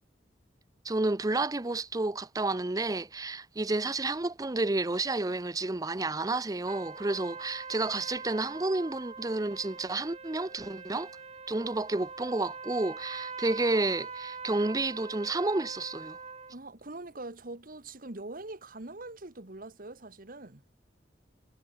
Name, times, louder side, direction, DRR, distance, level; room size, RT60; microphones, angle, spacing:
voice 1, 0.8-11.1 11.5-16.2, right 2 dB, 20° right, 0.6 m, -30 dB
sound 1, 6.7-16.6, right 5 dB, 35° right, 4.7 m, -43 dB
voice 2, 16.5-20.6, right 2 dB, 50° right, 1.7 m, -43 dB
head